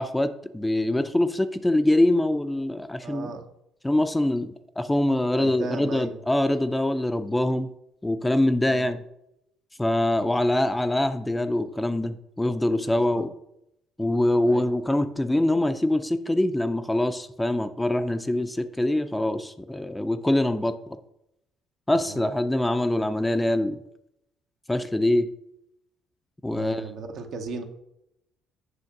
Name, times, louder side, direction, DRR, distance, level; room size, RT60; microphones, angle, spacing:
voice 1, 0.0-3.3 3.8-7.7 8.0-9.0 9.8-13.3 14.0-21.0 21.9-23.8 24.7-25.3 26.4-26.8, left 1 dB, 10° left, 9 dB, 0.6 m, -24 dB
voice 2, 3.0-3.5 5.4-6.2 8.6-8.9 12.9-13.2 14.4-14.7 21.9-22.3 26.5-27.6, right 4 dB, 65° right, 4 dB, 1.1 m, -37 dB
7.9 x 2.8 x 5.9 m, 0.81 s
supercardioid pair, 65°, 0 cm